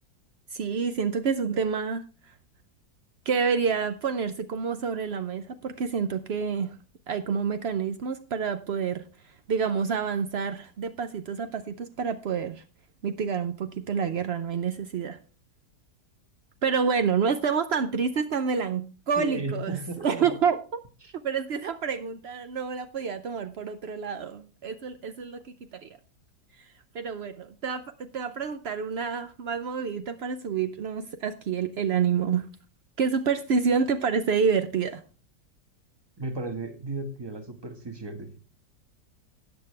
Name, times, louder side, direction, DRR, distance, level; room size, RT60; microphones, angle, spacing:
voice 1, 0.5-2.0 3.3-6.7 7.1-9.0 9.5-12.6 13.0-15.2 16.6-20.8 21.2-25.4 25.8-25.9 26.9-27.8 28.1-32.5 33.0-35.0, right 6 dB, 75° right, 9 dB, 0.5 m, -28 dB
voice 2, 19.2-20.4 21.0-21.1 36.2-38.4, right 2 dB, 15° right, 7 dB, 1.1 m, -35 dB
13.5 x 8.9 x 3.3 m, 0.35 s
omnidirectional pair, 1.9 m